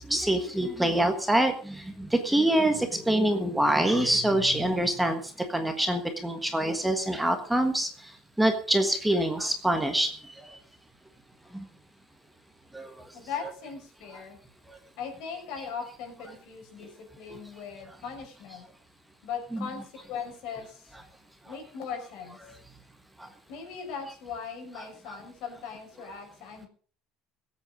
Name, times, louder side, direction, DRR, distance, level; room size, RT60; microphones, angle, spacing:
voice 1, 0.1-1.7 2.1-5.2 5.5-7.9 8.4-10.1 12.7-12.9 19.5-19.6, right 1 dB, 5° right, 5 dB, 1.4 m, -25 dB
voice 2, 13.1-14.4 15.0-18.6 19.2-21.0 21.5-22.4 23.5-26.7, left 6 dB, 60° left, 3 dB, 5.9 m, -39 dB
21.0 x 8.4 x 5.2 m, 0.43 s
cardioid pair, 160°, 0 cm